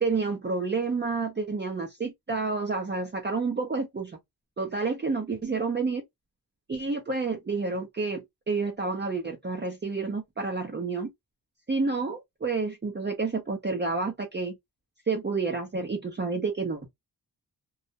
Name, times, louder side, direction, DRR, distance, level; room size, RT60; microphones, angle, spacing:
voice 1, 0.0-4.2 4.6-6.0 6.7-11.1 11.7-14.6 15.1-16.9, right 4 dB, 30° right, 0.6 m, -29 dB
2.3 x 2.1 x 2.7 m
cardioid pair, 70°, 38 cm